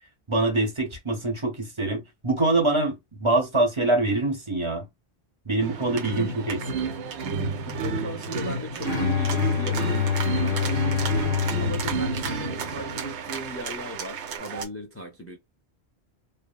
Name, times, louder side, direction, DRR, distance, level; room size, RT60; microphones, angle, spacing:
voice 1, 0.3-4.9 5.5-6.6, right 2 dB, 30° right, 0.8 m, -24 dB
sound 1, 5.6-14.7, right 4 dB, 85° right, 0.9 m, -30 dB
voice 2, 7.6-10.0 10.4-10.8 11.6-15.4, equal, 25° left, 0.3 m, -38 dB
Bowed string instrument, 8.8-13.0, left 8 dB, 60° left, 1.1 m, -27 dB
3.2 x 2.0 x 2.3 m
omnidirectional pair, 1.1 m